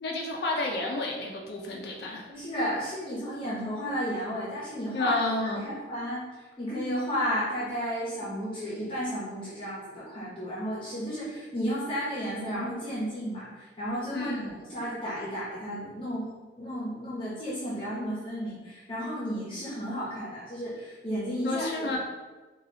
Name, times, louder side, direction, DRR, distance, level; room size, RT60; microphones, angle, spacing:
voice 1, 0.0-2.2 4.9-5.7 14.1-14.6 21.4-22.0, left 2 dB, 65° left, -1 dB, 0.5 m, -30 dB
voice 2, 2.3-5.1 5.4-16.3 16.6-21.9, equal, 30° left, -8 dB, 0.8 m, -33 dB
4.0 x 2.3 x 2.7 m, 1.3 s
head